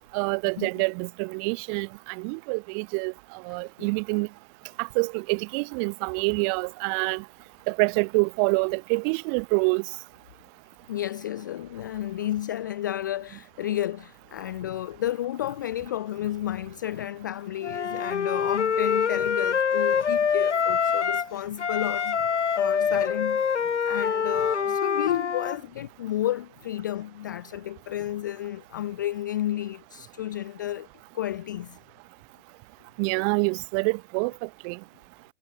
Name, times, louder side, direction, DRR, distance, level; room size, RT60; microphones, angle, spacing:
voice 1, 0.1-4.3 4.8-7.2 7.7-9.9 33.0-34.8, right 40 dB or more, 25° right, 1.6 m, -27 dB
voice 2, 10.9-22.2 22.5-30.9 31.1-31.8, left 12 dB, 15° left, 0.5 m, -32 dB
Wind instrument woodwind instrument, 17.6-21.3 21.6-25.6, left 7 dB, 75° left, 2.7 m, -25 dB
hypercardioid pair, 145°, 36 cm